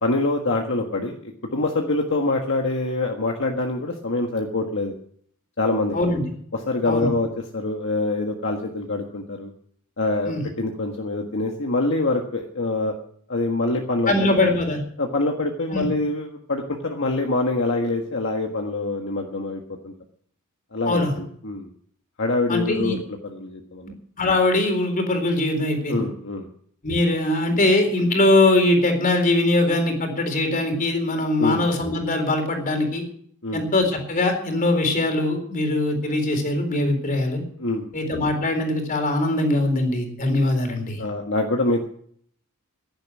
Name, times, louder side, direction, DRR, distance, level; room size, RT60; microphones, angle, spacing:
voice 1, 0.0-4.9 5.6-6.0 6.5-7.3 7.5-9.5 10.0-13.0 13.3-14.4 15.0-19.9 20.7-21.7 22.2-23.9 25.9-26.5 31.4-31.7 33.4-33.6 37.6-37.9 41.0-41.9, left 2 dB, 65° left, 1 dB, 1.6 m, -25 dB
voice 2, 5.9-6.2 6.8-7.1 10.2-10.4 14.1-14.8 15.7-15.9 20.8-21.1 22.5-23.0 24.2-26.1 26.8-33.0 33.5-37.4 37.9-41.0, left 2 dB, 40° left, 5 dB, 4.0 m, -21 dB
16.0 x 11.0 x 6.2 m, 0.62 s
head